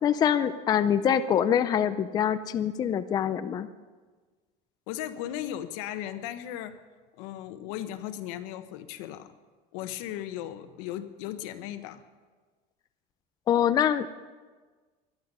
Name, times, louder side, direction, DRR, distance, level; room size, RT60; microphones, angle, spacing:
voice 1, 0.0-3.7 13.5-14.3, left 9 dB, 20° left, 11 dB, 0.4 m, -25 dB
voice 2, 4.9-6.8 7.2-9.3 9.7-12.0, left 12 dB, 85° left, 10 dB, 1.2 m, -36 dB
21.0 x 11.5 x 5.5 m, 1.4 s
cardioid pair, 175°, 18 cm